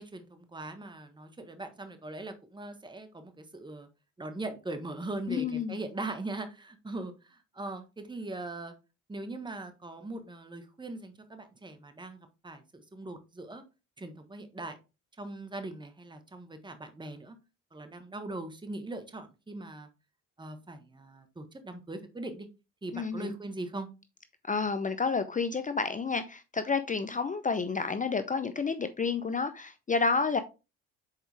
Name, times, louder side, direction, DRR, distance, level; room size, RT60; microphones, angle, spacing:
voice 1, 0.0-3.9 4.2-8.7 9.1-13.6 14.0-14.7 15.2-17.4 17.7-19.9 20.4-22.5 22.8-23.9, right 2 dB, 15° right, 1.3 m, -40 dB
voice 2, 5.3-5.8 22.9-23.3 24.5-30.4, left 4 dB, 25° left, 0.6 m, -30 dB
6.7 x 4.4 x 3.4 m
supercardioid pair, 65°, 34 cm